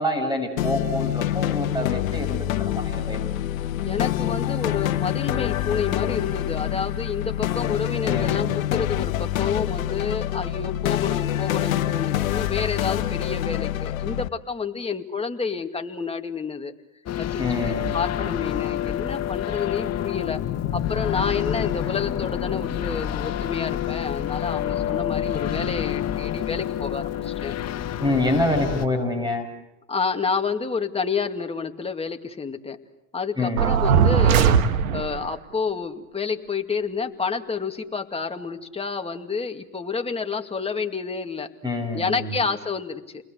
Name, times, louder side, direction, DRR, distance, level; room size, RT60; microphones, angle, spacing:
voice 1, 0.0-3.2 8.0-8.6 17.4-17.9 28.0-29.5 33.4-33.7 41.6-42.4, left 1 dB, 10° right, 6 dB, 6.6 m, -26 dB
sound 1, 0.6-14.3, left 12 dB, 80° left, 1.1 m, -26 dB
voice 2, 3.8-16.7 17.2-20.4 20.7-27.5 29.9-32.8 33.1-34.6 34.9-41.5 41.9-43.2, left 5 dB, 15° left, 4 dB, 2.3 m, -29 dB
sound 2, 17.1-28.9, left 11 dB, 40° left, 1.8 m, -28 dB
sound 3, 33.6-35.3, right 7 dB, 80° right, 1.7 m, -19 dB
30.0 x 21.0 x 8.1 m, 0.91 s
hypercardioid pair, 85°, 41 cm